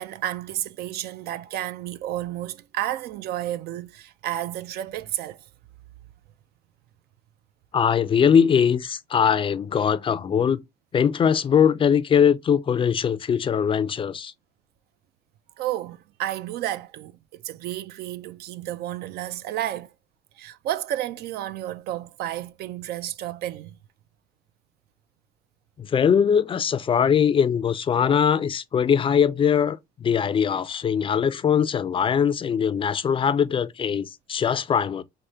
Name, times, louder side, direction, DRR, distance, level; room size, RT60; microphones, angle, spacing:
voice 1, 0.0-5.5 15.6-19.9 20.4-23.8 28.0-28.2, right 13 dB, 70° right, 0.4 m, -31 dB
voice 2, 7.7-10.6 10.9-14.3 25.8-35.0, left 7 dB, 30° left, 0.4 m, -21 dB
4.7 x 2.1 x 2.7 m
cardioid pair, 110°, 17 cm